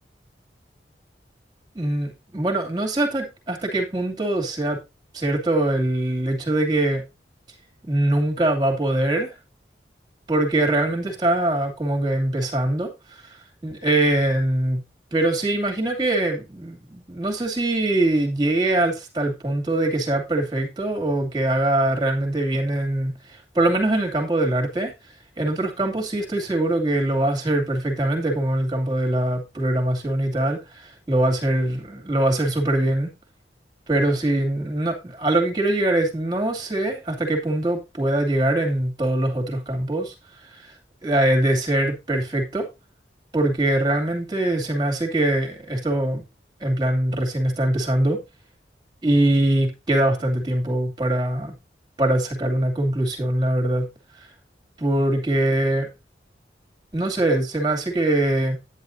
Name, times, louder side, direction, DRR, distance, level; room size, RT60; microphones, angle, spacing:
voice 1, 1.7-4.8 5.1-7.0 7.9-9.3 10.3-13.4 13.6-14.8 15.1-24.9 25.4-33.1 33.9-40.1 40.4-40.7 41.0-42.7 43.3-46.2 46.6-48.2 49.0-51.5 52.0-53.9 54.8-55.9 56.9-58.6, right 1 dB, 25° right, 2.5 m, -23 dB
10.0 x 10.0 x 2.7 m
head